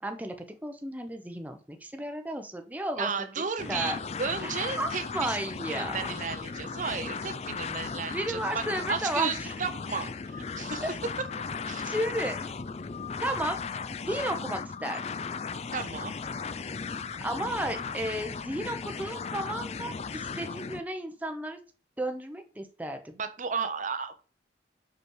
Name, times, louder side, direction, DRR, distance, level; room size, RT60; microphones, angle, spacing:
voice 1, 0.0-0.3 0.6-3.1 3.7-4.0 4.4-6.0 8.1-9.5 10.8-10.9 11.8-12.5 13.2-13.6 13.9-15.0 17.2-21.6 22.0-23.2, right 1 dB, 10° right, 5 dB, 0.7 m, -33 dB
voice 2, 3.0-5.4 5.7-11.1 11.6-12.0 15.7-16.1 23.2-24.1, right 5 dB, 45° right, 9 dB, 0.7 m, -34 dB
sound 1, 3.6-20.8, left 5 dB, 35° left, 0.4 m, -36 dB
5.3 x 5.1 x 6.3 m, 0.37 s
head